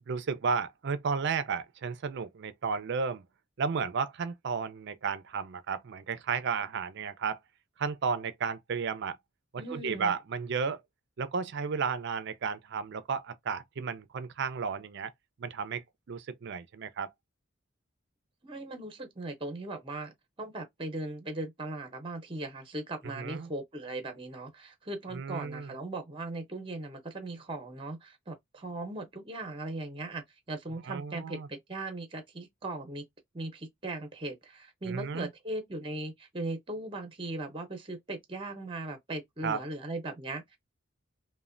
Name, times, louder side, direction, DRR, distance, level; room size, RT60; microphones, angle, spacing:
voice 1, 0.1-3.2 3.6-7.4 7.8-9.2 9.7-10.8 11.2-15.1 15.4-17.1 23.1-23.5 25.1-25.8 30.8-31.5 34.9-35.3 39.4-39.6, right 5 dB, 60° right, 0.4 m, -33 dB
voice 2, 9.6-10.1 18.4-33.0 33.3-40.6, right 2 dB, 25° right, 0.7 m, -38 dB
3.2 x 2.2 x 2.5 m
head